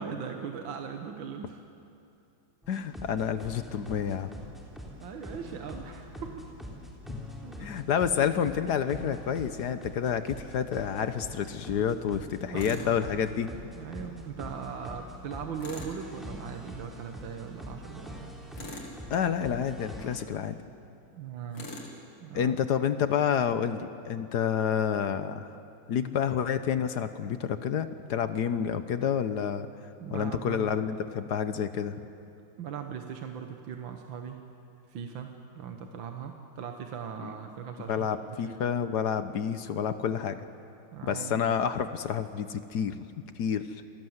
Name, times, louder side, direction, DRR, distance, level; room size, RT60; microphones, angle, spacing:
voice 1, 0.0-1.6 5.0-6.5 7.4-7.7 12.4-13.0 13.7-18.3 21.1-21.7 22.2-22.6 30.0-30.7 32.6-34.4 34.9-38.1 38.4-38.6 40.9-41.4, right 7 dB, 65° right, 4 dB, 1.8 m, -39 dB
sound 1, 2.6-20.2, equal, ahead, 3.5 m, -44 dB
voice 2, 2.7-4.3 7.1-7.2 7.6-13.5 19.1-20.6 22.3-25.6 25.9-29.7 30.1-32.1 37.9-40.4 41.0-43.1 43.3-43.8, left 8 dB, 60° left, 11 dB, 1.2 m, -29 dB
Tools, 12.6-12.9 15.6-16.0 18.5-19.0 21.5-21.9, left 2 dB, 85° left, 3.6 m, -41 dB
27.5 x 18.0 x 8.0 m, 2.6 s
omnidirectional pair, 2.3 m